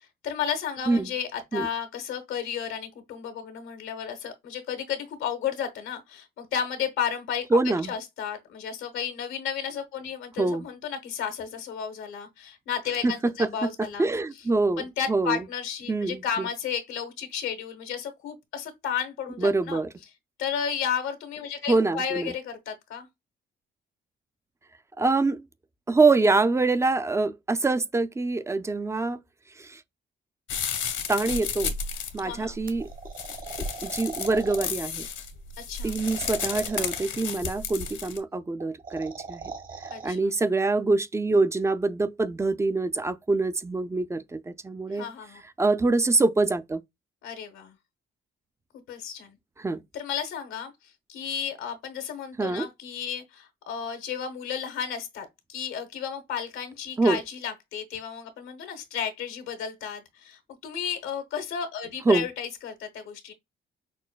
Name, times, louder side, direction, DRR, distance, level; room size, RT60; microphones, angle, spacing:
voice 1, 0.2-7.6 7.9-14.1 14.8-19.8 20.4-23.1 32.2-32.5 35.6-35.9 39.9-40.3 44.9-45.4 47.2-47.7 48.9-49.4 49.9-50.7 51.1-63.3, left 8 dB, 90° left, 1.0 m, -33 dB
voice 2, 7.5-7.9 10.4-10.7 13.0-13.1 13.4-13.5 14.0-15.4 15.9-16.5 19.4-19.9 21.7-22.3 25.0-25.5 25.9-29.2 29.6-29.8 31.1-31.7 32.1-32.9 33.8-35.1 35.8-39.5 40.0-45.1 45.6-46.8 49.6-49.8 52.4-52.7 57.0-57.2 62.1-62.3, right 3 dB, 15° right, 0.4 m, -25 dB
sound 1, 30.5-38.2, left 6 dB, 70° left, 0.9 m, -33 dB
sound 2, 32.7-34.7 36.0-37.2 38.6-40.1, right 5 dB, 45° right, 1.1 m, -40 dB
6.0 x 2.2 x 2.3 m
cardioid pair, 90°, 20 cm